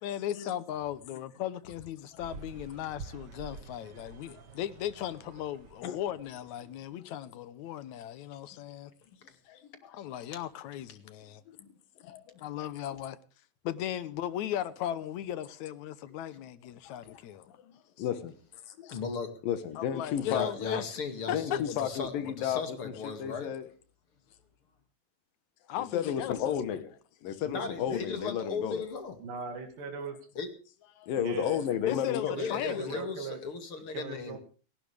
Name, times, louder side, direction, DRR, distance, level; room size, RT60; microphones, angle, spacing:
voice 1, 0.0-8.9 9.9-11.4 12.4-13.2 13.6-17.5 19.8-20.8 21.3-21.8 25.7-26.8 27.6-27.7 31.9-33.0, left 11 dB, 70° left, 2.1 m, -37 dB
sound 1, 2.2-6.9, right 4 dB, 55° right, 1.2 m, -48 dB
voice 2, 9.5-10.0 11.5-11.7 12.0-12.2 16.8-17.2 17.6-18.3 19.4-20.5 21.3-23.7 25.8-26.9 27.2-28.9 31.0-32.3, left 9 dB, 90° left, 3.1 m, -33 dB
voice 3, 18.9-19.3 20.2-23.5 27.5-29.2 30.4-30.5 32.3-34.4, left 5 dB, 45° left, 2.7 m, -36 dB
voice 4, 29.2-30.2 31.1-31.9 32.3-33.4 33.9-34.4, right 5 dB, 80° right, 4.1 m, -39 dB
30.0 x 11.5 x 3.4 m
omnidirectional pair, 3.9 m